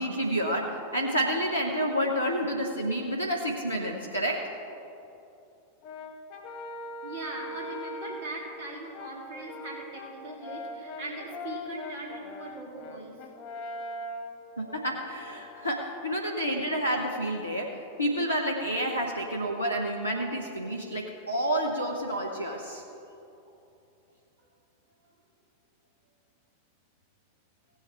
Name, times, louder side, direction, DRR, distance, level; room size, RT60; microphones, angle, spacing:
voice 1, 0.0-4.6 14.6-22.8, equal, 85° left, 0 dB, 0.9 m, -29 dB
Brass instrument, 5.8-8.3 8.9-15.9, left 1 dB, 45° left, 0.9 m, -41 dB
voice 2, 7.0-13.2 23.5-23.6 25.0-25.1, right 2 dB, 55° right, -1 dB, 2.7 m, -40 dB
16.5 x 8.3 x 4.5 m, 2.8 s
figure-of-eight pair, 90°, 0 cm